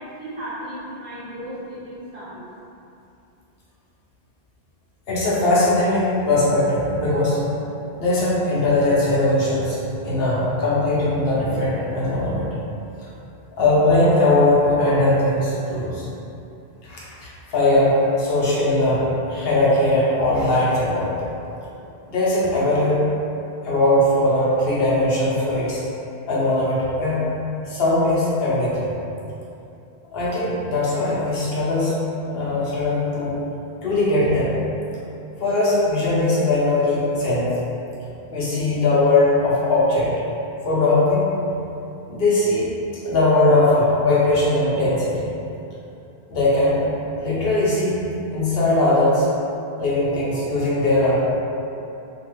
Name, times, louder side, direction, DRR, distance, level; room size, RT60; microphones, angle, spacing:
voice 1, 0.0-2.4, right 1 dB, 65° right, -9 dB, 1.0 m, -35 dB
voice 2, 5.1-7.4 8.0-12.5 13.6-16.1 16.8-19.0 19.3-21.1 22.1-23.0 23.6-25.8 26.3-27.2 27.7-28.9 30.1-33.3 33.8-34.6 35.4-37.5 38.3-40.1 40.6-41.3 42.1-42.7 43.0-45.3 46.3-46.9 47.2-48.0 48.3-49.3 49.8-51.2, left 2 dB, 70° left, -8 dB, 0.9 m, -20 dB
2.6 x 2.3 x 3.0 m, 2.8 s
omnidirectional pair, 1.0 m